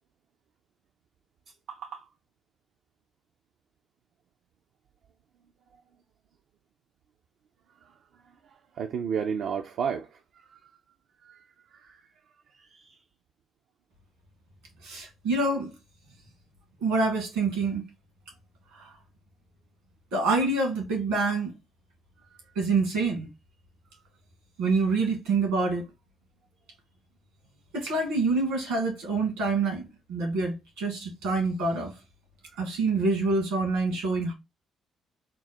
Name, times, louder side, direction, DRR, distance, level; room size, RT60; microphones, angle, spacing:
voice 1, 1.7-2.1 8.8-10.2 10.5-10.6 11.2-11.4 11.7-12.0 12.6-13.0 15.0-15.1 32.5-32.6, right 7 dB, 65° right, 0.4 m, -33 dB
voice 2, 14.8-15.7 16.8-17.8 18.7-18.9 20.1-21.5 22.6-23.3 24.6-25.9 27.7-31.9 32.6-34.3, right 3 dB, 85° right, 1.8 m, -26 dB
3.6 x 2.1 x 4.1 m
hypercardioid pair, 50°, 0 cm